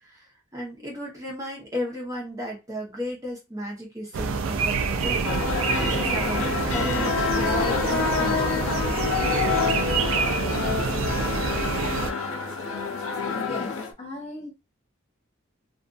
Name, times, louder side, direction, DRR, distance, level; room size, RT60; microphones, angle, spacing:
voice 1, 0.0-5.3 5.6-8.5, equal, 15° right, 0.8 m, -34 dB
sound 1, 4.1-12.1, right 4 dB, 75° right, 0.4 m, -27 dB
sound 2, 4.9-11.8, equal, 5° left, 0.3 m, -43 dB
sound 3, 5.2-13.9, left 5 dB, 80° left, 0.5 m, -27 dB
voice 2, 13.2-14.5, left 2 dB, 30° left, 1.0 m, -37 dB
2.5 x 2.4 x 2.3 m
head